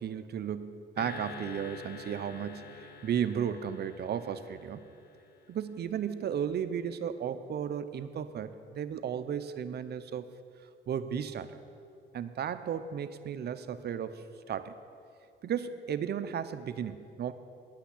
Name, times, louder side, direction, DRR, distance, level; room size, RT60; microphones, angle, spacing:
voice 1, 0.0-4.8 5.5-10.3 10.9-11.6 12.1-14.7 15.4-17.3, right 8 dB, 55° right, 11 dB, 0.6 m, -34 dB
sound 1, 1.0-5.4, left 5 dB, 55° left, 1.1 m, -47 dB
10.0 x 5.9 x 8.3 m, 2.5 s
cardioid pair, 90°, 20 cm